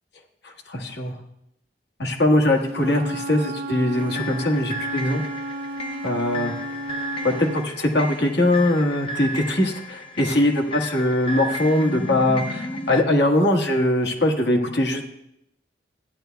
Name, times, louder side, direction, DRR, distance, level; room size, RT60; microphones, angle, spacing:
voice 1, 0.4-1.1 2.0-5.2 6.0-6.5 7.2-15.0, left 1 dB, 75° left, 1 dB, 1.4 m, -21 dB
Wind instrument woodwind instrument, 2.6-7.7, right 1 dB, 60° right, 0.5 m, -33 dB
sound 1, 4.0-13.0, left 1 dB, 30° left, 0.6 m, -33 dB
15.5 x 10.0 x 2.3 m, 0.78 s
head